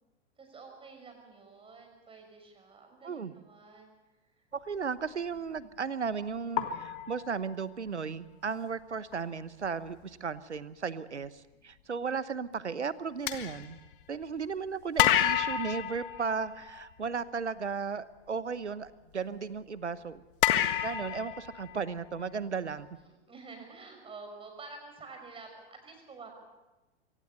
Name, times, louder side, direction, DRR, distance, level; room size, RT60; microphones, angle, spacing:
voice 1, 0.4-3.9 5.6-5.8 22.9-26.3, right 4 dB, 15° right, 4 dB, 5.7 m, -49 dB
voice 2, 4.5-13.8 14.1-20.2 20.8-22.9, right 5 dB, 80° right, 17 dB, 1.0 m, -35 dB
sound 1, 5.4-5.6 6.6-7.9 9.1-9.2 9.6-9.9 13.3-14.5 15.0-17.1 20.4-22.2, left 11 dB, 50° left, 1.6 m, -30 dB
24.0 x 17.5 x 6.8 m, 1.0 s
figure-of-eight pair, 95°, 34 cm